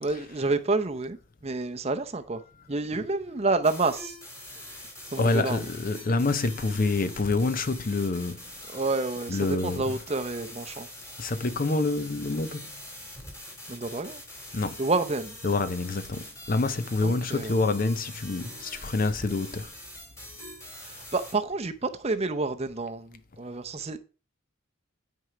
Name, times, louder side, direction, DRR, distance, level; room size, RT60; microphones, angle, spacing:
voice 1, 0.0-1.2 1.4-2.4 2.7-4.2 5.1-5.6 8.7-10.9 13.7-14.2 14.8-15.4 17.0-17.6 20.8-24.0, right 3 dB, 30° right, 0.6 m, -29 dB
sound 1, 3.6-21.3, left 1 dB, 15° left, 2.4 m, -44 dB
voice 2, 5.2-8.4 9.3-9.8 11.2-12.7 14.5-14.8 15.4-19.7, left 3 dB, 40° left, 0.5 m, -27 dB
9.6 x 4.5 x 5.0 m
head